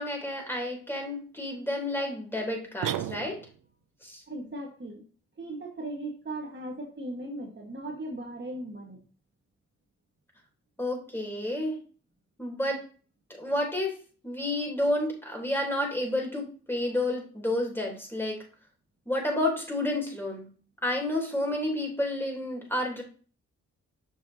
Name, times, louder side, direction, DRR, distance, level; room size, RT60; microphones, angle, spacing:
voice 1, 0.0-3.4 4.0-4.2 10.8-11.8 12.4-12.8 13.4-13.9 14.2-18.4 19.1-20.5 20.8-23.0, left 1 dB, 5° left, 0 dB, 3.5 m, -30 dB
sound 1, 2.8-3.7, right 12 dB, 80° right, 0.5 m, -33 dB
voice 2, 4.3-5.1 5.4-9.0, right 1 dB, 35° right, 0 dB, 1.8 m, -38 dB
6.8 x 5.5 x 2.9 m, 0.39 s
supercardioid pair, 50°, 32 cm